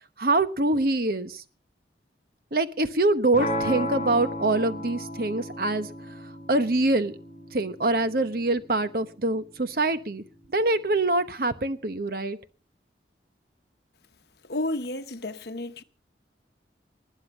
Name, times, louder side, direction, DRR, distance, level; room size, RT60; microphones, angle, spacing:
voice 1, 0.2-1.4 2.5-5.9 6.5-7.2 7.5-10.2 10.5-12.4, right 2 dB, 55° right, 1.1 m, -24 dB
sound 1, 3.3-9.4, equal, 40° left, 6.2 m, -34 dB
voice 2, 14.4-15.8, left 2 dB, 65° left, 1.1 m, -31 dB
20.0 x 7.9 x 5.5 m
head